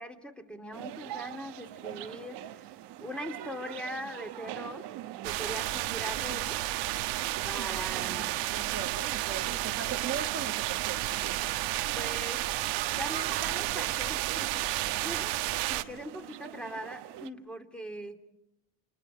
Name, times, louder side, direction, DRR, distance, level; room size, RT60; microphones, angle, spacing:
voice 1, 0.0-2.7 3.0-4.9 5.2-6.7 7.4-8.6 10.9-11.0 11.9-12.5 12.9-18.2, equal, ahead, 2.7 m, -41 dB
sound 1, 0.7-17.3, right 14 dB, 65° right, 1.3 m, -44 dB
sound 2, 5.2-15.8, right 16 dB, 85° right, 1.4 m, -32 dB
voice 2, 8.1-11.4, right 6 dB, 30° right, 1.5 m, -39 dB
29.5 x 29.0 x 5.0 m
cardioid pair, 110°, 43 cm